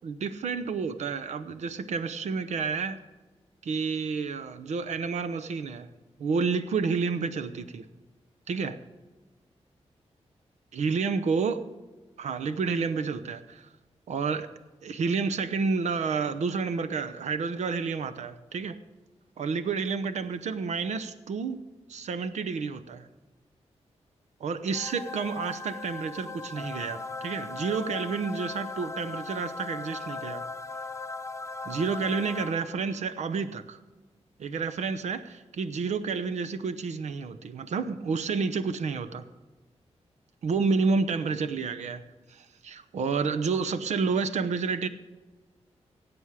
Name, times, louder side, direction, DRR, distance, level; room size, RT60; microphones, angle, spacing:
voice 1, 0.0-3.0 3.6-5.9 6.2-7.8 8.5-8.8 10.7-11.6 12.2-13.7 14.1-14.5 14.8-18.7 19.4-21.6 21.9-23.1 24.4-30.4 31.6-33.8 34.4-39.2 40.4-42.0 42.3-44.9, right 5 dB, 85° right, 10 dB, 0.8 m, -30 dB
sound 1, 24.7-33.0, left 3 dB, 25° left, 0.5 m, -38 dB
17.0 x 8.0 x 4.9 m, 1.3 s
wide cardioid pair, 115°, 11 cm